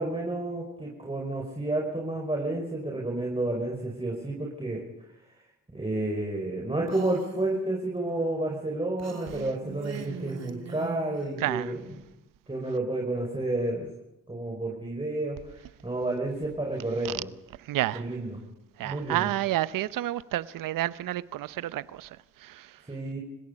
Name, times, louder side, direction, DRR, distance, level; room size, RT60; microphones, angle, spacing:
voice 1, 0.0-4.8 5.7-12.0 12.5-13.9 14.3-17.3 17.9-18.4 18.8-19.3 22.9-23.2, right 2 dB, 15° right, 5.3 m, -30 dB
Female speech woman speaking, 6.9-7.5 9.0-11.3, right 6 dB, 50° right, 3.0 m, -42 dB
voice 2, 11.4-11.7 17.0-17.1 17.7-18.0 18.8-22.1 22.4-22.7, right 14 dB, 70° right, 0.8 m, -30 dB
29.0 x 17.0 x 5.3 m
supercardioid pair, 55°, 33 cm